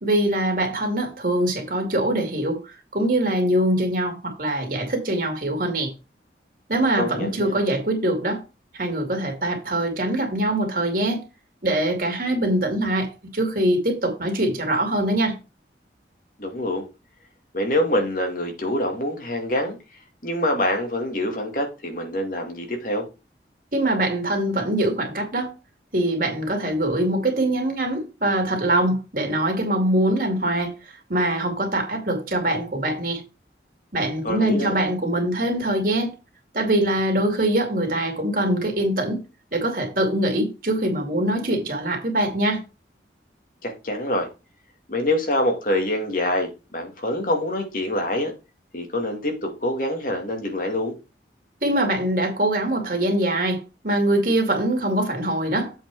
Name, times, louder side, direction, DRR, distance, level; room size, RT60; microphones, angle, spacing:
voice 1, 0.0-2.6 2.9-5.9 6.7-8.4 8.7-11.2 11.6-15.4 23.7-25.5 25.9-30.7 31.1-33.2 33.9-36.1 36.5-39.2 39.5-42.6 51.6-55.7, right 1 dB, 50° right, 2.5 m, -23 dB
voice 2, 7.0-7.6 16.4-16.8 17.5-19.8 20.2-23.1 34.2-34.8 43.6-44.3 44.9-48.3 48.7-50.9, left 1 dB, 50° left, 2.2 m, -25 dB
7.8 x 4.6 x 4.7 m
head